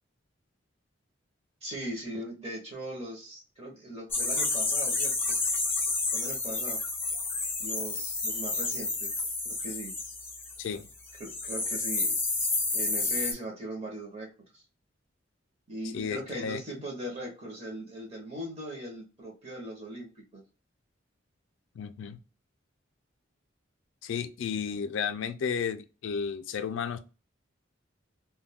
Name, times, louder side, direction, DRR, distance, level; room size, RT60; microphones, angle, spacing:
voice 1, 1.6-5.4 6.1-6.8 7.6-9.9 11.2-12.1 12.7-14.3 14.5-14.6 15.7-20.4, right 1 dB, 35° right, 0.8 m, -39 dB
sound 1, 4.1-10.8 11.1-13.3, left 3 dB, 10° left, 0.5 m, -30 dB
voice 2, 15.9-16.6 21.8-22.2 24.0-27.0, left 6 dB, 80° left, 0.3 m, -33 dB
2.3 x 2.2 x 3.4 m
head